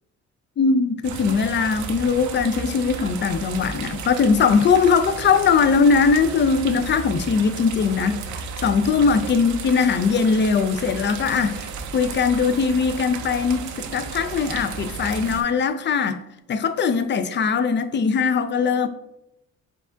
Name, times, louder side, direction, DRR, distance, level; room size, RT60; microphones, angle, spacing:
voice 1, 0.6-8.2 8.6-11.7 11.9-13.7 13.9-16.2 16.5-18.9, left 5 dB, 40° left, 10 dB, 0.4 m, -20 dB
sound 1, 1.0-15.4, right 5 dB, 70° right, 0.6 m, -34 dB
4.6 x 2.4 x 3.8 m, 0.82 s
cardioid pair, 90°, 30 cm